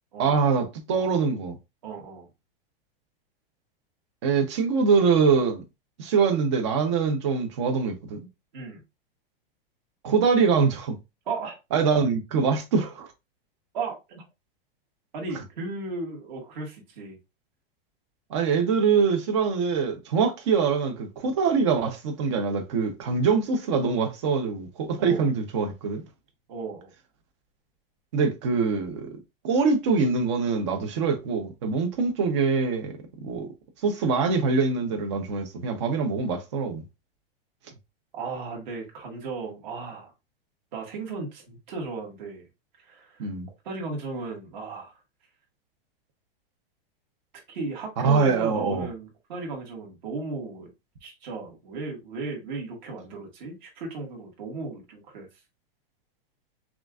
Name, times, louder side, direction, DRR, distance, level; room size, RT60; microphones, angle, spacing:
voice 1, 0.2-1.6 4.2-5.6 6.0-8.2 10.0-11.0 11.7-13.1 18.3-26.0 28.1-29.2 29.4-33.5 33.8-36.8 43.2-43.5 48.0-48.9, right 5 dB, 30° right, 0.7 m, -24 dB
voice 2, 1.8-2.3 8.5-8.8 11.3-11.6 13.7-14.2 15.1-17.2 25.0-25.3 26.5-26.9 38.1-40.1 40.7-42.5 42.8-43.3 43.6-45.0 47.5-50.7 51.0-55.3, right 4 dB, 50° right, 1.8 m, -35 dB
5.8 x 2.4 x 2.3 m
supercardioid pair, 180°, 29 cm